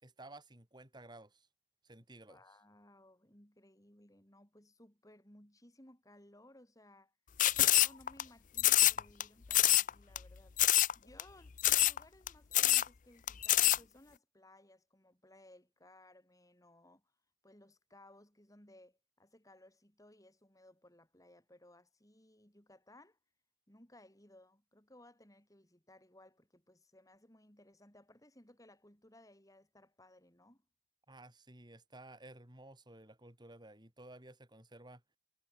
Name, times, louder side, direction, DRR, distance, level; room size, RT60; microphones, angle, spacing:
voice 1, 0.0-1.5 1.8-2.4 31.1-35.0, right 2 dB, 25° right, 4.1 m, -54 dB
voice 2, 2.3-7.1 7.6-17.1 17.4-23.2 23.7-30.6, left 1 dB, 20° left, 6.7 m, -61 dB
sound 1, 7.4-8.2 8.6-9.2 9.5-9.9 10.2-10.3 10.6-10.9 11.2-11.3 11.6-12.0 12.3-12.4 12.5-12.9 13.3-13.8, left 14 dB, 45° left, 0.5 m, -26 dB
head